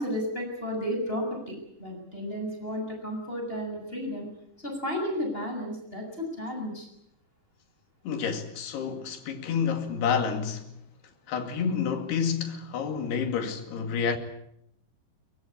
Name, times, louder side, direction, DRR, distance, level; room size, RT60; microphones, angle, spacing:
voice 1, 0.0-4.3 4.6-6.9, equal, 10° left, 7.0 m, -33 dB
voice 2, 8.1-10.7 11.3-14.2, left 6 dB, 70° left, 4.3 m, -29 dB
23.0 x 22.0 x 8.7 m
omnidirectional pair, 4.9 m